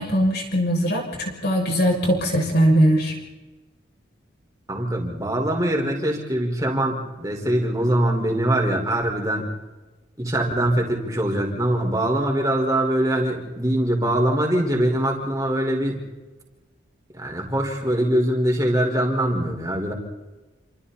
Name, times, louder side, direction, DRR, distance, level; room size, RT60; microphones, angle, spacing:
voice 1, 0.0-3.1, equal, 55° left, 1 dB, 6.6 m, -20 dB
voice 2, 4.7-9.5 10.2-16.0 17.1-19.9, right 1 dB, 15° right, 0 dB, 4.9 m, -23 dB
29.0 x 27.5 x 4.3 m, 1.1 s
head